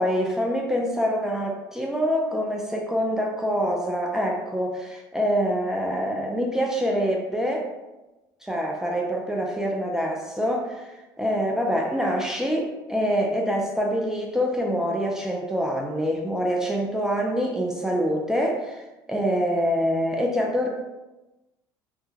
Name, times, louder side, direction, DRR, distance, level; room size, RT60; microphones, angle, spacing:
voice 1, 0.0-7.7 8.4-20.7, equal, 5° right, 0 dB, 0.4 m, -25 dB
2.3 x 2.1 x 3.1 m, 1.1 s
supercardioid pair, 95°, 9 cm